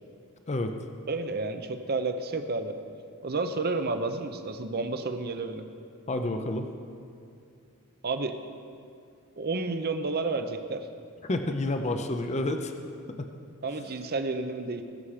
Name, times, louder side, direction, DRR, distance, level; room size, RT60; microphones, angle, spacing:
voice 1, 1.1-2.7 3.2-5.6 8.0-8.4 9.4-10.9 13.6-14.8, right 3 dB, 45° right, 8 dB, 0.8 m, -31 dB
voice 2, 6.1-6.7 11.2-12.7 13.2-13.3, left 2 dB, 30° left, 6 dB, 0.6 m, -29 dB
21.0 x 7.1 x 5.0 m, 2.4 s
head